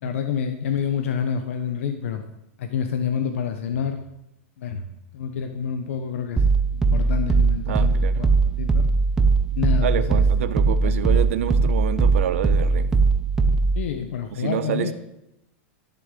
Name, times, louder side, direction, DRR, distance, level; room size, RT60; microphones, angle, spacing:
voice 1, 0.0-2.2 2.6-4.0 4.6-4.8 5.1-6.4 6.7-8.8 9.5-10.2 10.8-11.1 13.7-14.9, left 7 dB, 70° left, 6 dB, 1.2 m, -28 dB
sound 1, 6.4-13.9, right 4 dB, 5° right, 0.7 m, -20 dB
voice 2, 7.7-8.2 9.8-12.9 14.3-14.9, right 10 dB, 70° right, 11 dB, 1.2 m, -27 dB
13.0 x 7.6 x 8.3 m, 0.87 s
supercardioid pair, 175°, 7 cm